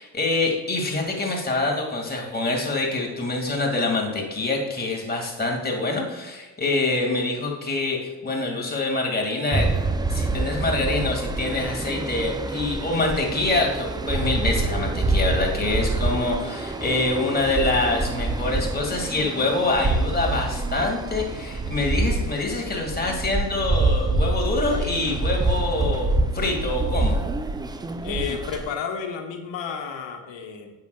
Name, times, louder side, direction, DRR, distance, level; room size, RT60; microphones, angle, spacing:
voice 1, 0.0-9.7 10.1-26.1 26.3-27.2, left 2 dB, 20° left, -1 dB, 2.1 m, -25 dB
sound 1, 9.5-28.7, right 2 dB, 10° right, 0.3 m, -26 dB
voice 2, 28.0-30.7, left 6 dB, 65° left, 3 dB, 1.3 m, -31 dB
8.1 x 6.6 x 2.3 m, 1.2 s
supercardioid pair, 65°, 49 cm